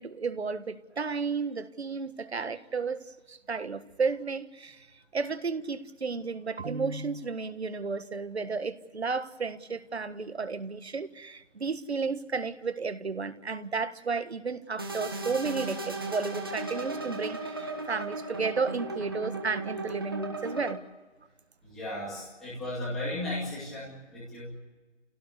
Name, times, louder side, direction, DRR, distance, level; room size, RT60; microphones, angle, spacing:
voice 1, 0.0-4.9 5.1-20.8, right 4 dB, 60° right, 11 dB, 1.6 m, -33 dB
sound 1, 14.8-20.7, right 2 dB, 20° right, 1.3 m, -36 dB
voice 2, 21.6-24.6, left 1 dB, ahead, -10 dB, 2.3 m, -35 dB
27.5 x 17.5 x 8.3 m, 1.3 s
hypercardioid pair, 180°, 36 cm